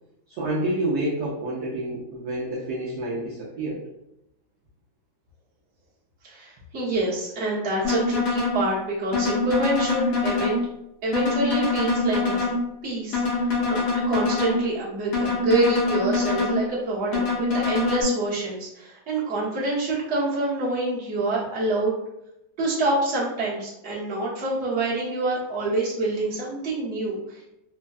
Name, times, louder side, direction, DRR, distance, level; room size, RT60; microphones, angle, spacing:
voice 1, 0.3-3.8, right 1 dB, 70° right, -5 dB, 1.0 m, -28 dB
voice 2, 6.2-10.6 11.0-12.5 12.8-21.9 22.6-27.6, right 2 dB, 40° right, -8 dB, 1.1 m, -26 dB
sound 1, 7.8-8.6 9.1-10.6 11.1-12.6 13.1-14.6 15.1-16.6 17.1-18.0, left 4 dB, 60° left, 0.9 m, -24 dB
3.4 x 2.2 x 2.3 m, 0.84 s
omnidirectional pair, 2.2 m